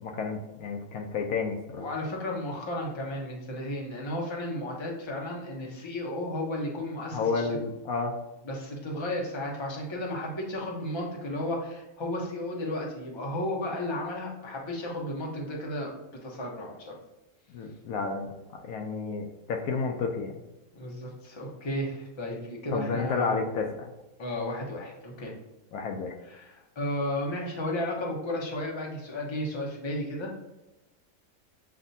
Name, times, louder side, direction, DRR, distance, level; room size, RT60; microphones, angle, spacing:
voice 1, 0.0-1.9 7.1-8.2 17.5-20.3 22.7-23.9 25.7-26.2, left 4 dB, 75° left, 3 dB, 1.0 m, -31 dB
voice 2, 1.7-7.6 8.4-15.9 16.2-16.9 20.7-23.4 24.2-25.3 26.2-30.4, left 1 dB, 25° left, -1 dB, 0.7 m, -33 dB
7.6 x 2.6 x 2.7 m, 1.0 s
omnidirectional pair, 1.6 m